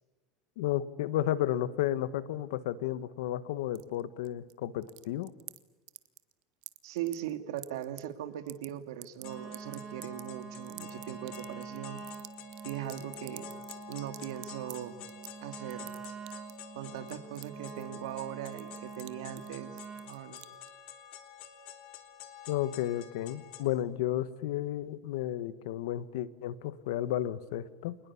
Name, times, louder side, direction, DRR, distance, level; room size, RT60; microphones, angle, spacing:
voice 1, 0.6-5.3 22.5-28.0, left 13 dB, 80° left, 15 dB, 1.5 m, -32 dB
sound 1, 3.7-4.5 4.8-5.6 5.9-6.3 6.6-8.0 8.3-8.7 9.0-14.7 15.1-15.4 15.7-16.6 17.0-18.2 18.5-19.1 19.4-19.5 19.8-20.7, right 26 dB, 60° right, 1.5 m, -47 dB
voice 2, 6.8-12.0 12.6-13.5 13.9-15.0 15.4-15.9 16.7-19.8 20.0-20.4, right 11 dB, 85° right, 10 dB, 2.4 m, -39 dB
sound 2, 9.2-23.6, left 8 dB, 55° left, 3.4 m, -50 dB
Wind instrument woodwind instrument, 9.2-20.2, right 6 dB, 25° right, 1.4 m, -46 dB
27.5 x 20.5 x 8.6 m, 1.3 s
supercardioid pair, 135°, 2 cm